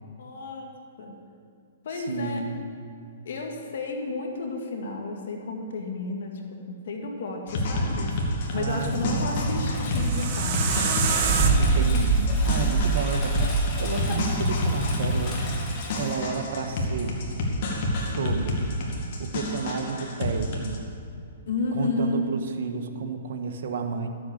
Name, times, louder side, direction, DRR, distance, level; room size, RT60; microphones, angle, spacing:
voice 1, 0.2-0.7 1.0-1.2 1.8-2.5 3.3-8.2 8.5-11.1 21.5-22.2, left 3 dB, 70° left, 2 dB, 1.8 m, -32 dB
voice 2, 1.9-2.7 8.5-9.4 11.5-13.4 13.8-15.3 15.9-17.2 18.0-18.7 19.2-20.8 21.7-24.1, right 5 dB, 65° right, 6 dB, 1.3 m, -31 dB
sound 1, 7.5-20.8, left 1 dB, 50° left, 2.2 m, -29 dB
Engine, 8.1-16.8, left 1 dB, 30° left, 2.5 m, -32 dB
sound 2, 9.8-14.8, right 4 dB, 40° right, 1.2 m, -24 dB
12.5 x 7.8 x 6.6 m, 2.5 s
hypercardioid pair, 145°, 0 cm